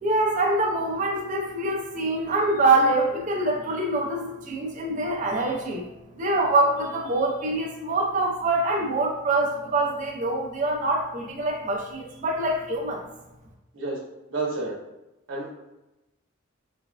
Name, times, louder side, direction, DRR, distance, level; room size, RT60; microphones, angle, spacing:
voice 1, 0.0-5.8 6.2-13.0, right 2 dB, 40° right, -1 dB, 0.4 m, -25 dB
voice 2, 14.3-14.7 15.3-15.5, right 3 dB, 70° right, -3 dB, 0.8 m, -29 dB
3.2 x 2.1 x 2.3 m, 0.96 s
head